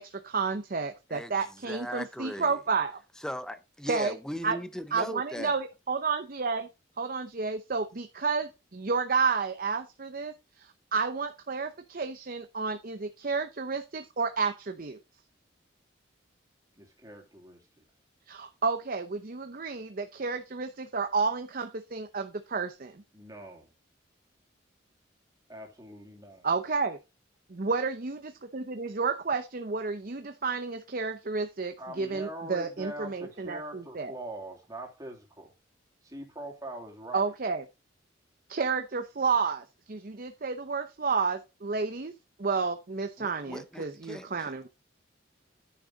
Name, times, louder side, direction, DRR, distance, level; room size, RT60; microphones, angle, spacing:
voice 1, 0.0-3.0 3.9-4.1 4.4-4.6 4.9-6.7 7.0-15.0 18.3-23.0 26.4-27.0 27.5-28.2 28.5-34.1 37.1-37.6 38.5-42.1 42.4-44.7, right 4 dB, 45° right, 0.7 m, -31 dB
voice 2, 1.6-2.6 3.2-5.5 43.2-44.7, equal, 5° left, 0.6 m, -38 dB
voice 3, 16.8-17.6 23.1-23.7 25.5-26.5 31.8-35.5 36.0-37.2, right 1 dB, 20° right, 2.7 m, -42 dB
10.0 x 6.5 x 3.9 m
head